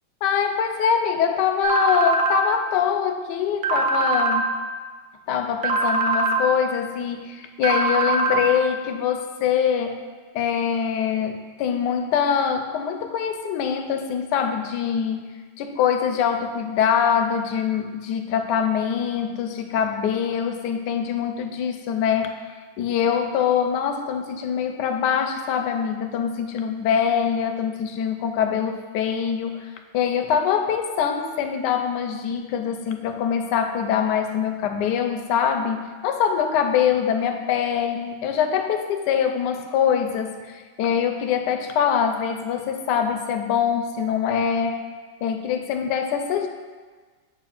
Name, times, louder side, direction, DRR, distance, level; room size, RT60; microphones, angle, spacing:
voice 1, 0.2-4.5 5.3-10.0 10.3-15.3 15.6-22.3 22.8-44.8 45.2-46.5, left 8 dB, 75° left, 5 dB, 1.0 m, -24 dB
sound 1, 1.6-2.4 3.6-4.4 5.6-6.4 7.6-8.4, right 3 dB, 85° right, 0.7 m, -22 dB
7.4 x 2.5 x 5.7 m, 1.4 s
omnidirectional pair, 2.3 m